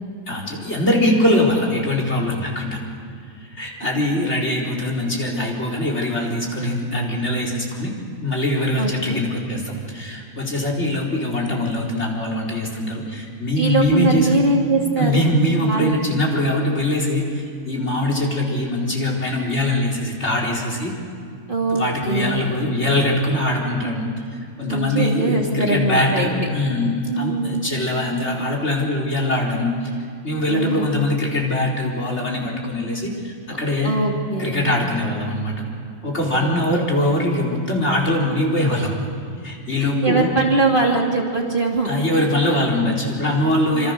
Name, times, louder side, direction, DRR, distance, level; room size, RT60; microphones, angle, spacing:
voice 1, 0.3-2.8 3.4-7.9 8.2-14.3 15.0-20.9 21.7-33.9 34.4-35.5 36.0-38.9 39.4-40.3 41.8-43.9, left 1 dB, 45° left, 0 dB, 4.6 m, -22 dB
voice 2, 8.8-9.2 13.6-15.3 15.6-16.0 21.5-22.6 24.7-26.5 27.1-27.7 30.5-30.9 33.8-34.6 36.3-37.2 39.8-41.9 43.7-43.9, right 3 dB, 35° right, 0 dB, 2.9 m, -22 dB
27.0 x 26.5 x 6.7 m, 2.4 s
omnidirectional pair, 1.6 m